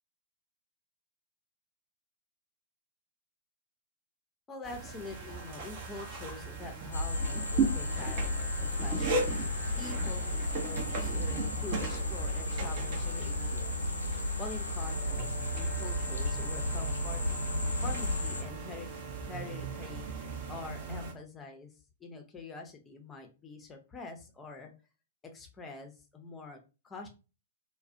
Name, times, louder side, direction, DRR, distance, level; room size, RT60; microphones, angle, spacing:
voice 1, 4.5-13.8 14.4-17.2 17.8-18.9 19.2-21.7 22.0-24.7 25.3-26.6 26.8-27.1, left 4 dB, 15° left, 3 dB, 0.5 m, -45 dB
sound 1, 4.6-21.1, right 4 dB, 40° right, 0.6 m, -37 dB
sound 2, 6.9-18.4, left 2 dB, 85° left, 0.4 m, -33 dB
2.3 x 2.0 x 2.6 m, 0.31 s
figure-of-eight pair, 110°, 0 cm